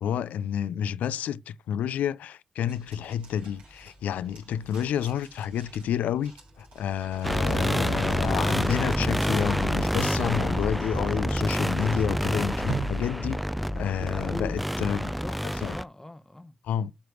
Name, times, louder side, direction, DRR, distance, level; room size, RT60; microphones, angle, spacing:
voice 1, 0.0-13.4 13.7-15.1 15.6-15.7 16.7-16.9, left 9 dB, 85° left, 0.3 m, -29 dB
sound 1, 2.7-14.0, right 6 dB, 85° right, 3.5 m, -46 dB
sound 2, 7.2-15.8, equal, ahead, 0.4 m, -27 dB
voice 2, 14.0-16.6, left 1 dB, 15° left, 0.9 m, -41 dB
7.8 x 3.3 x 6.3 m
supercardioid pair, 40°, 3 cm